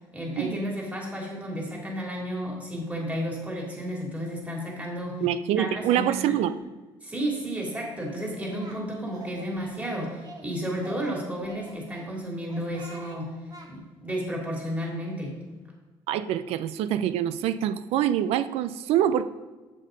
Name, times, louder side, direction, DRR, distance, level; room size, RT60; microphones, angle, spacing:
voice 1, 0.1-5.2 5.6-6.4 7.0-13.3 13.7-15.3, equal, 15° right, -2 dB, 2.9 m, -32 dB
voice 2, 5.2-6.6 16.1-19.2, right 10 dB, 80° right, 13 dB, 0.5 m, -25 dB
Singing, 8.1-8.8 9.1-10.5 10.8-12.1 12.5-13.2 13.5-13.7, right 2 dB, 40° right, 1.8 m, -46 dB
7.6 x 6.5 x 5.2 m, 1.3 s
cardioid pair, 90°, 10 cm